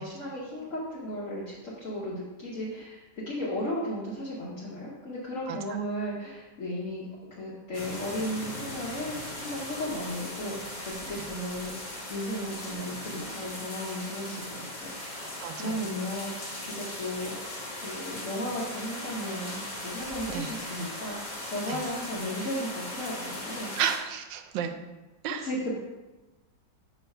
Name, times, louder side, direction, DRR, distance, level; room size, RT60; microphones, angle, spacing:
voice 1, 0.0-7.1 7.3-15.2 15.6-16.3 16.7-17.3 17.8-23.7 25.4-25.8, equal, 50° left, -6 dB, 1.2 m, -35 dB
sound 1, 7.7-24.0, left 1 dB, 30° left, 0.9 m, -38 dB
voice 2, 15.4-15.8 20.3-20.5 21.7-21.8 23.7-24.7 25.2-25.5, right 8 dB, 90° right, 8 dB, 1.3 m, -32 dB
6.2 x 3.1 x 5.4 m, 1.1 s
omnidirectional pair, 1.9 m